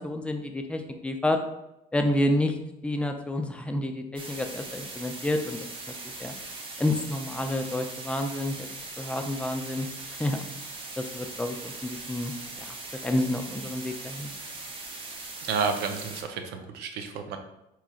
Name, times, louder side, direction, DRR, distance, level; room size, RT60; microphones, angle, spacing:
voice 1, 0.0-1.4 1.9-2.5 2.8-5.6 6.2-6.3 6.8-8.7 9.0-9.9 10.2-10.4 11.0-12.3 12.6-12.8 13.0-14.3, left 1 dB, 5° left, 5 dB, 0.4 m, -29 dB
sound 1, 4.2-16.2, right 3 dB, 30° right, 0.8 m, -40 dB
voice 2, 15.4-17.4, right 5 dB, 85° right, 5 dB, 0.6 m, -31 dB
4.8 x 3.0 x 2.3 m, 0.87 s
cardioid pair, 110°, 17 cm